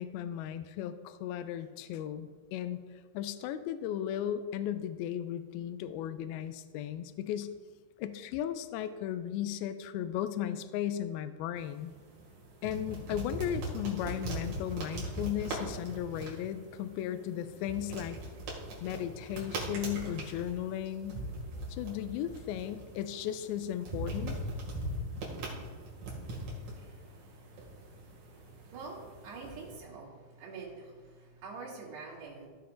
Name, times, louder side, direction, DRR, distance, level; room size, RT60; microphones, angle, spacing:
voice 1, 0.0-2.8 3.1-7.5 8.0-11.9 12.6-18.2 18.8-21.2 21.7-24.4, left 10 dB, 85° left, 10 dB, 2.2 m, -36 dB
sound 1, 11.6-29.8, right 1 dB, 60° right, 3.4 m, -41 dB
voice 2, 26.1-32.5, right 4 dB, 80° right, -5 dB, 4.2 m, -47 dB
16.0 x 7.1 x 2.6 m, 1.5 s
omnidirectional pair, 4.7 m